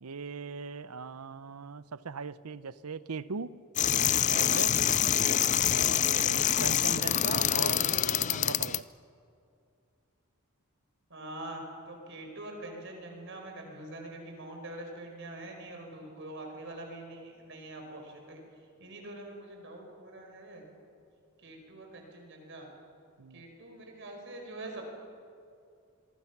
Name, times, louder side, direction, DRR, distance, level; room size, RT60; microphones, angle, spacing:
voice 1, 0.0-3.5 4.3-4.8 5.7-8.9 23.2-23.4, right 5 dB, 90° right, 16 dB, 0.7 m, -39 dB
sound 1, 3.8-8.8, left 10 dB, 35° left, 0.5 m, -26 dB
voice 2, 11.1-18.4 18.8-20.7 21.4-22.7 23.3-24.8, right 1 dB, 55° right, 2 dB, 4.8 m, -44 dB
27.0 x 23.5 x 6.0 m, 2.5 s
head